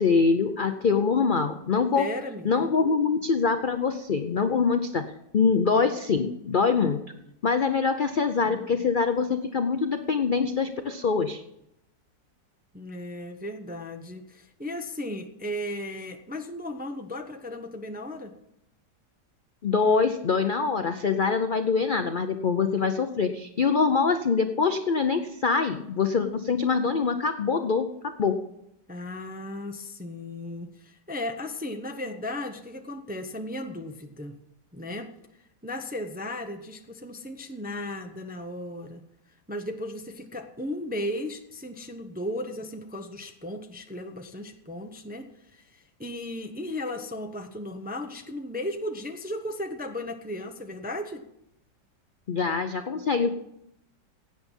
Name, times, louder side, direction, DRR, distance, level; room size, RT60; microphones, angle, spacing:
voice 1, 0.0-2.1 2.4-5.0 5.3-7.0 7.4-11.4 19.6-27.9 28.2-28.4 52.3-53.3, left 5 dB, 60° left, 7 dB, 0.5 m, -24 dB
voice 2, 1.9-2.7 8.4-8.8 12.7-18.3 28.9-34.4 34.7-35.1 35.6-39.0 39.5-45.7 46.0-51.2, left 1 dB, 10° right, 5 dB, 0.5 m, -35 dB
16.5 x 8.6 x 5.4 m, 0.81 s
omnidirectional pair, 1.8 m